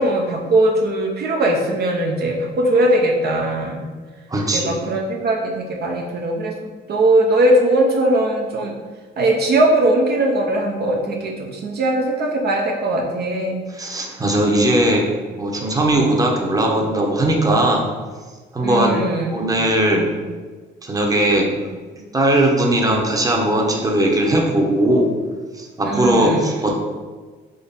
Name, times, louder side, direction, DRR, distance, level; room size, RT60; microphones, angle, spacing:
voice 1, 0.0-3.8 4.5-6.6 6.9-8.7 9.2-13.7 18.6-19.4 25.8-26.5, right 1 dB, 50° right, 0 dB, 0.7 m, -19 dB
voice 2, 4.3-4.8 13.8-15.0 15.4-17.8 18.5-20.1 20.8-21.5 22.1-25.1 25.5-26.8, right 1 dB, 15° right, 0 dB, 0.9 m, -18 dB
3.8 x 3.4 x 4.0 m, 1.4 s
cardioid pair, 85°, 20 cm